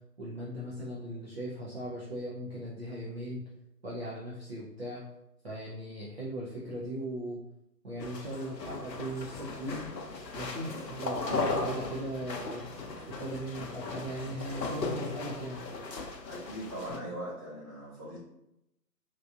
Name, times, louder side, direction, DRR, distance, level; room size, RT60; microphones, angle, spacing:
voice 1, 0.2-3.4 3.8-5.0 5.4-7.4 7.8-9.8 10.4-12.6 13.1-15.6, right 1 dB, 40° right, -6 dB, 0.7 m, -38 dB
sound 1, 8.0-17.0, left 3 dB, 85° left, 0.8 m, -37 dB
voice 2, 16.2-18.2, right 1 dB, 15° right, -11 dB, 1.3 m, -41 dB
3.8 x 2.9 x 2.4 m, 0.84 s
figure-of-eight pair, 155°, 49 cm